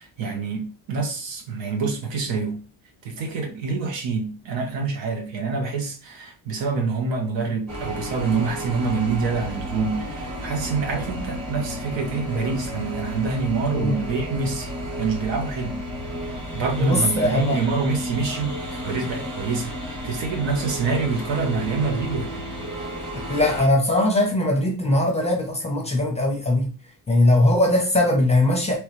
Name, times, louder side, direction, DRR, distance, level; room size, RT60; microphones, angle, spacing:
voice 1, 0.0-2.6 3.0-14.7 15.0-15.8 16.5-22.5, right 4 dB, 75° right, 1.1 m, -26 dB
sound 1, 7.7-23.7, equal, 35° right, 1.8 m, -32 dB
voice 2, 16.8-17.6 23.3-26.7 27.1-28.8, left 1 dB, 15° left, 0.6 m, -20 dB
3.1 x 3.0 x 3.1 m
cardioid pair, 175°, 44 cm